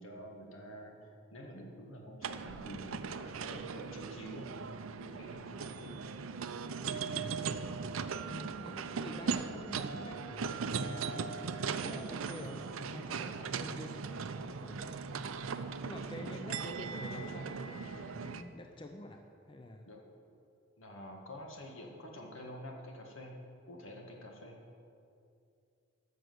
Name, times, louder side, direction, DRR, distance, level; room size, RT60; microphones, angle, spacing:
voice 1, 0.0-4.5 5.0-6.0 16.1-16.4 19.9-20.0 20.8-23.4 23.7-24.6, equal, 75° left, 1 dB, 1.8 m, -48 dB
sound 1, 2.2-18.4, right 5 dB, 80° right, 0.5 m, -39 dB
voice 2, 8.2-15.0 15.4-19.9, left 1 dB, 25° left, 4 dB, 0.5 m, -48 dB
13.0 x 6.4 x 7.9 m, 2.6 s
head